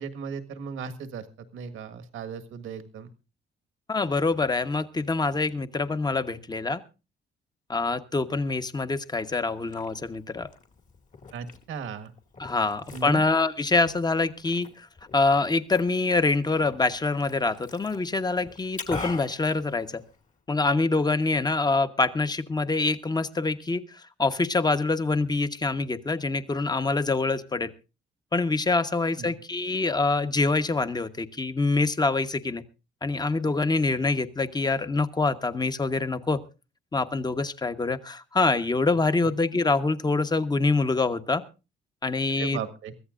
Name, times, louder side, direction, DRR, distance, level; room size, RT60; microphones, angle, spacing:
voice 1, 0.0-3.1 11.3-12.1 12.9-13.2 29.2-29.4 42.4-42.9, right 6 dB, 80° right, 7 dB, 1.7 m, -36 dB
voice 2, 3.9-6.8 7.7-10.5 12.4-14.9 15.1-20.0 20.5-27.7 28.3-32.6 33.0-36.4 36.9-41.4 42.0-42.6, left 3 dB, 20° left, 10 dB, 1.1 m, -25 dB
Liquid, 9.4-20.4, left 3 dB, 40° left, 2.2 m, -44 dB
23.5 x 14.0 x 2.5 m, 0.30 s
cardioid pair, 90°, 20 cm